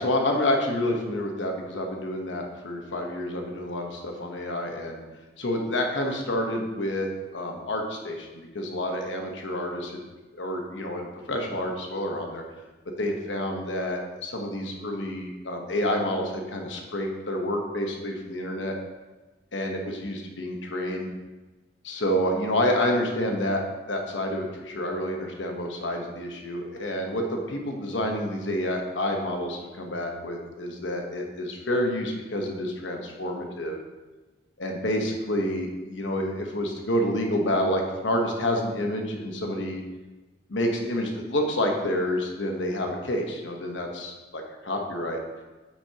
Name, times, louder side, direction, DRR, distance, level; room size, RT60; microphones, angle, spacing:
voice 1, 0.0-5.0 5.4-10.0 10.3-12.4 13.0-18.8 19.5-21.1 21.8-23.6 23.9-33.8 34.6-39.8 40.5-45.2, left 1 dB, 80° left, 2 dB, 1.1 m, -28 dB
8.3 x 6.1 x 2.9 m, 1.2 s
head